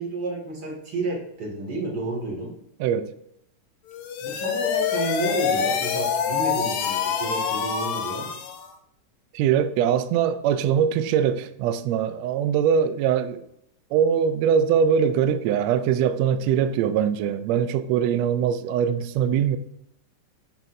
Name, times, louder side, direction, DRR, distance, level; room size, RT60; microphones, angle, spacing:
voice 1, 0.0-2.5 4.2-8.3, right 2 dB, 35° right, 2.4 m, -31 dB
voice 2, 2.8-3.1 9.3-13.5 13.9-19.6, right 8 dB, 80° right, 1.5 m, -22 dB
sound 1, 3.9-8.7, left 7 dB, 75° left, 2.0 m, -26 dB
8.0 x 7.1 x 2.7 m
omnidirectional pair, 3.5 m